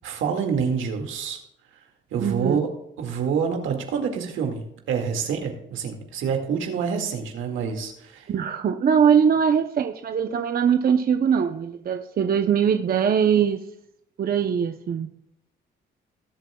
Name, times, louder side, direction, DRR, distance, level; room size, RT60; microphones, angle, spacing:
voice 1, 0.0-1.4 2.1-2.7 3.0-8.3, right 6 dB, 85° right, 3 dB, 2.1 m, -27 dB
voice 2, 2.2-2.6 8.3-13.6 14.2-15.1, right 7 dB, 50° right, 6 dB, 0.8 m, -21 dB
19.0 x 8.0 x 2.3 m, 0.79 s
cardioid pair, 90°, 20 cm